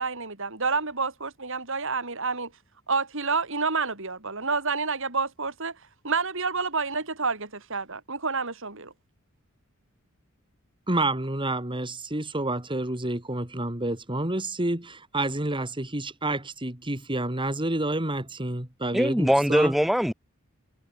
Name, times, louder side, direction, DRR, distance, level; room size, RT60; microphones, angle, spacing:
voice 1, 0.0-2.5 2.9-5.7 6.0-8.9, right 4 dB, 65° right, 5.1 m, -29 dB
voice 2, 10.9-19.7, right 2 dB, 25° right, 3.2 m, -29 dB
voice 3, 18.9-20.1, equal, ahead, 0.4 m, -21 dB
head